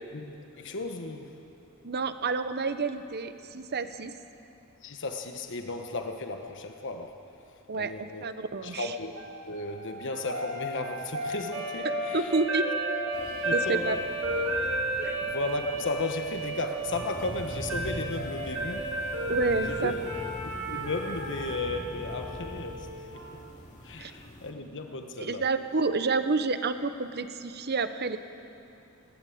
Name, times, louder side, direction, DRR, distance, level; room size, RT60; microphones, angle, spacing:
voice 1, 0.1-1.3 4.8-7.2 7.7-8.3 8.6-9.1 9.4-12.3 13.4-14.0 15.2-18.9 19.6-19.9 20.4-22.9 23.8-25.5, left 3 dB, 60° left, 5 dB, 1.3 m, -35 dB
voice 2, 1.8-4.1 7.7-8.9 12.1-12.7 13.5-14.0 15.0-15.2 19.3-20.0 24.0-24.1 25.2-28.2, right 3 dB, 50° right, 10 dB, 0.9 m, -29 dB
sound 1, 9.2-23.3, right 1 dB, 80° right, 3.8 m, -33 dB
sound 2, 13.1-24.5, equal, 35° left, 2.4 m, -43 dB
20.0 x 16.5 x 8.6 m, 2.7 s
head